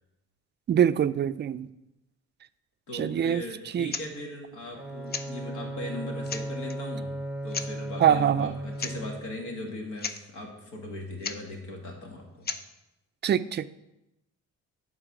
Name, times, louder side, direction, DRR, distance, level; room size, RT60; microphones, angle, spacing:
voice 1, 0.7-1.7 2.9-3.4 3.7-3.9 8.0-8.5 13.2-13.7, right 9 dB, 35° right, 13 dB, 0.4 m, -24 dB
voice 2, 2.9-7.1 7.4-12.5, left 2 dB, 80° left, 1 dB, 2.1 m, -39 dB
sound 1, 3.9-4.1 5.1-5.3 5.9-6.0 6.3-6.8 7.5-7.7 8.8-9.0 9.2-9.3 9.7-9.8 10.0-10.2 11.2-11.4 12.4-12.6, left 5 dB, 35° left, 0.6 m, -34 dB
Bowed string instrument, 4.7-9.6, right 1 dB, 5° right, 0.8 m, -36 dB
11.0 x 4.0 x 6.0 m, 0.91 s
cardioid pair, 90°, 30 cm